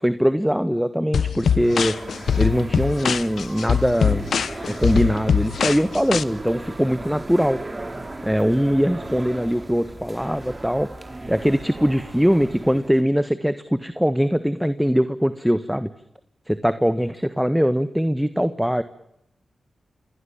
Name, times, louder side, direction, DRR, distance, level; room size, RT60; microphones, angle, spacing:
voice 1, 0.0-2.1 2.4-4.3 4.7-7.6 8.2-10.9 11.3-15.9 16.5-18.8, equal, 5° right, 12 dB, 1.5 m, -21 dB
sound 1, 1.1-6.2, left 7 dB, 75° left, 1.0 m, -22 dB
sound 2, 1.4-13.0, right 2 dB, 30° right, 4.6 m, -36 dB
27.5 x 23.0 x 7.3 m, 0.81 s
supercardioid pair, 40°, 0 cm